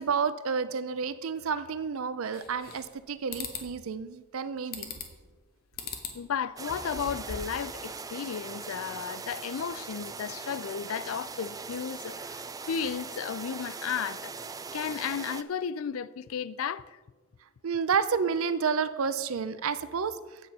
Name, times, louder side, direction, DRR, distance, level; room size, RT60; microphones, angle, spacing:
voice 1, 0.0-4.9 17.6-20.2, right 6 dB, 85° right, 0.6 m, -30 dB
sound 1, 2.3-3.0 3.3-3.7 4.7-5.2 5.8-6.2 6.6-7.6, left 5 dB, 45° left, 1.2 m, -39 dB
voice 2, 6.1-14.3 14.7-17.0, left 7 dB, 80° left, 0.4 m, -34 dB
sound 2, 6.6-15.4, right 5 dB, 15° right, 0.4 m, -40 dB
9.1 x 7.6 x 5.4 m
head